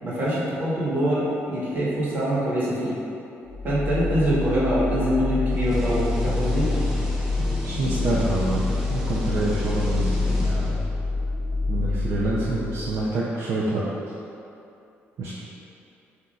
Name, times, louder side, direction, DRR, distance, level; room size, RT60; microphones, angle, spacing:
voice 1, 0.0-2.9 3.6-6.6, equal, 40° right, -8 dB, 1.4 m, -24 dB
sound 1, 3.5-13.1, left 3 dB, 70° left, 0.6 m, -27 dB
sound 2, 5.5-11.0, equal, 10° right, 0.6 m, -33 dB
voice 2, 7.4-10.8 11.7-13.8 15.2-15.3, right 2 dB, 60° right, -7 dB, 0.5 m, -27 dB
7.6 x 2.7 x 2.4 m, 2.7 s
cardioid pair, 135°, 5 cm